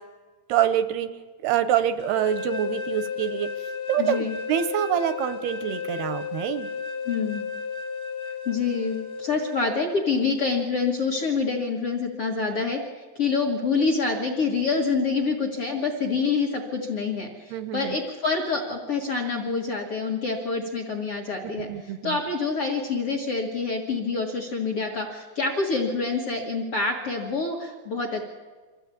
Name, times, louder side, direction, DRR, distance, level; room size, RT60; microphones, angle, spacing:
voice 1, 0.5-1.1 1.4-3.5 3.9-6.7 17.5-18.0 21.6-22.2, right 10 dB, 80° right, 11 dB, 2.5 m, -26 dB
sound 1, 2.0-9.6, left 5 dB, 20° left, 1.2 m, -33 dB
voice 2, 4.0-4.4 7.0-7.4 8.4-28.2, left 4 dB, 50° left, 3 dB, 1.7 m, -26 dB
24.5 x 15.5 x 8.5 m, 1.4 s
omnidirectional pair, 5.2 m